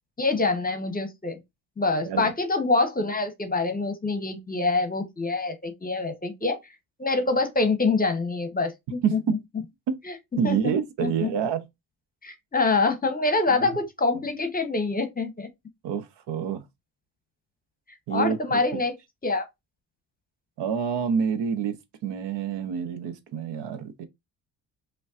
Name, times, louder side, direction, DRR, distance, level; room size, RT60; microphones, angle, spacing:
voice 1, 0.2-1.4 1.8-6.6 7.0-9.4 10.0-10.1 10.4-10.7 11.0-11.3 12.2-15.5 18.1-18.9 19.2-19.5, left 3 dB, 20° left, 0.8 m, -25 dB
voice 2, 9.0-9.4 9.9-10.0 10.4-11.7 13.6-13.7 15.8-16.6 18.1-18.6 20.6-21.7 22.0-24.1, right 7 dB, 70° right, 0.8 m, -27 dB
5.1 x 2.3 x 2.4 m
supercardioid pair, 75°, 44 cm